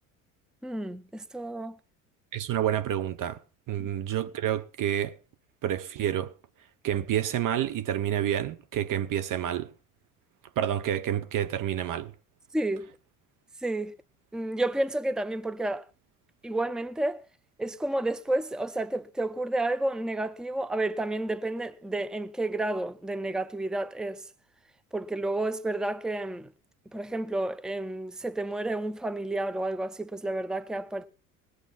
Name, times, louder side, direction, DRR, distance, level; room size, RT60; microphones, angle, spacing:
voice 1, 0.6-1.8 12.5-12.9 13.6-13.9 14.3-15.8 16.4-17.2 17.6-24.2 24.9-26.5 26.9-31.1, right 2 dB, ahead, 0.8 m, -31 dB
voice 2, 2.3-3.4 3.7-5.2 5.6-6.3 6.8-9.7 10.6-12.1, right 11 dB, 45° right, 1.0 m, -29 dB
19.5 x 8.2 x 5.8 m
hypercardioid pair, 65°, 43 cm